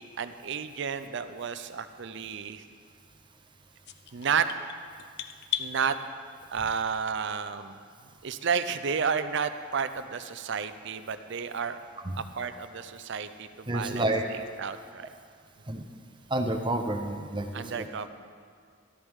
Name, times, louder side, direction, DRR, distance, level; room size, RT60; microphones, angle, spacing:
voice 1, 0.0-2.6 4.1-4.5 5.6-6.0 6.5-7.8 8.2-11.8 12.2-15.1 17.5-18.1, right 6 dB, 60° right, 11 dB, 0.5 m, -31 dB
sound 1, 3.8-5.7, left 10 dB, 55° left, 0.6 m, -35 dB
voice 2, 13.7-14.2 15.7-15.8 16.3-17.9, right 1 dB, 25° right, 5 dB, 0.8 m, -29 dB
13.5 x 13.0 x 3.6 m, 2.1 s
head